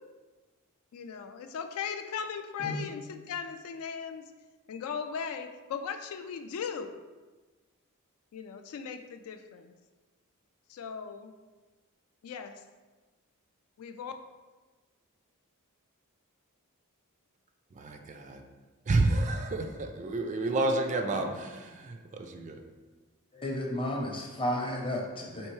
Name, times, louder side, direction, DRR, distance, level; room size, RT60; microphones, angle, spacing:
voice 1, 0.9-4.2 4.7-6.9 8.3-9.7 10.7-11.3 12.2-12.6 13.8-14.1, left 6 dB, 75° left, 7 dB, 0.3 m, -38 dB
voice 2, 17.8-18.4 18.9-22.6, right 2 dB, 35° right, 5 dB, 0.3 m, -30 dB
voice 3, 23.3-25.5, left 1 dB, 25° left, -1 dB, 0.7 m, -33 dB
4.5 x 3.1 x 3.1 m, 1.3 s
head